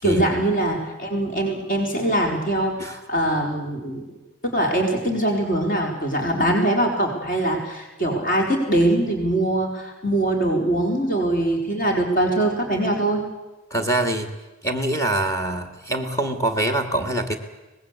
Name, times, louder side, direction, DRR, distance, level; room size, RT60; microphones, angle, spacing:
voice 1, 0.0-4.0 4.4-13.2, right 1 dB, 45° left, 1 dB, 4.5 m, -22 dB
voice 2, 13.7-14.3 14.6-17.4, right 1 dB, 15° left, 7 dB, 2.0 m, -24 dB
24.5 x 19.5 x 8.3 m, 1.1 s
head